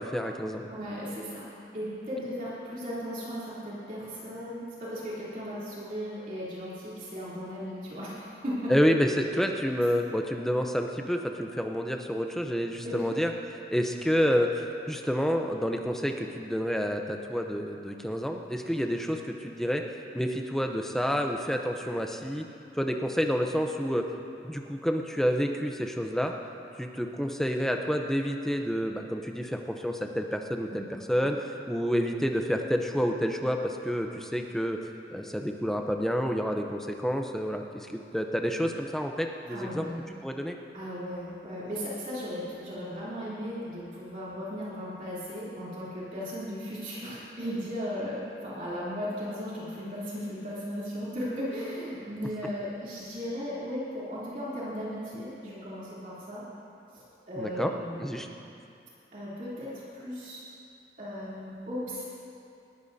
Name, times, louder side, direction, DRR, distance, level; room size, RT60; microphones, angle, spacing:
voice 1, 0.0-0.7 8.7-13.3 13.7-19.8 20.1-22.5 22.7-24.1 24.4-26.3 26.8-34.8 35.1-39.9 40.2-40.6 57.4-57.7 58.0-58.3, equal, ahead, 3 dB, 0.7 m, -29 dB
voice 2, 0.7-1.5 1.7-8.7 12.8-13.1 30.7-30.8 39.5-40.0 40.7-56.4 56.9-58.1 59.1-60.4 61.0-62.0, equal, 45° right, -9 dB, 3.2 m, -36 dB
20.0 x 14.5 x 2.8 m, 2.6 s
head